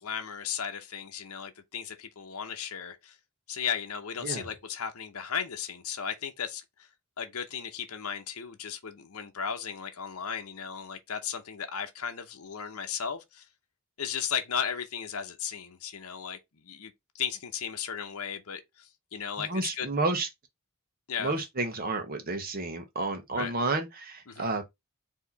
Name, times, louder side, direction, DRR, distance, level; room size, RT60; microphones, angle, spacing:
voice 1, 0.0-3.2 3.5-6.9 7.2-13.5 14.0-19.9 21.1-21.3 23.3-23.5 24.3-24.5, left 7 dB, 80° left, 0.8 m, -35 dB
voice 2, 19.4-20.3 21.2-24.6, right 3 dB, 40° right, 0.9 m, -31 dB
4.7 x 2.8 x 4.0 m
head